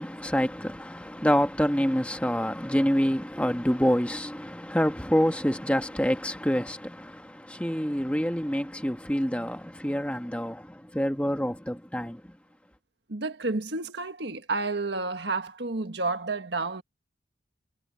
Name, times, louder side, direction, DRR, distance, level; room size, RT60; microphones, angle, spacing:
voice 1, 0.0-12.3, equal, 5° left, 1.4 m, -27 dB
voice 2, 13.1-16.8, right 3 dB, 70° right, 1.6 m, -30 dB
head